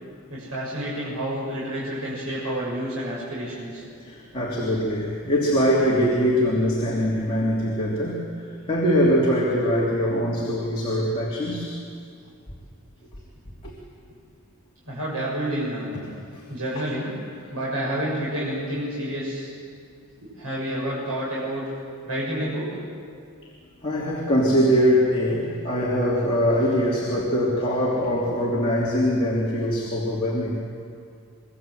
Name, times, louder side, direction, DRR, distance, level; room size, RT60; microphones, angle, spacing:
voice 1, 0.3-3.8 14.9-16.0 16.5-17.2 17.5-19.5 20.4-21.6 22.0-22.8, right 1 dB, 85° right, -6 dB, 7.3 m, -29 dB
voice 2, 4.0-11.8 13.6-13.7 16.7-16.8 23.8-30.6, equal, 25° left, -5 dB, 3.2 m, -22 dB
26.5 x 23.0 x 8.0 m, 2.3 s
head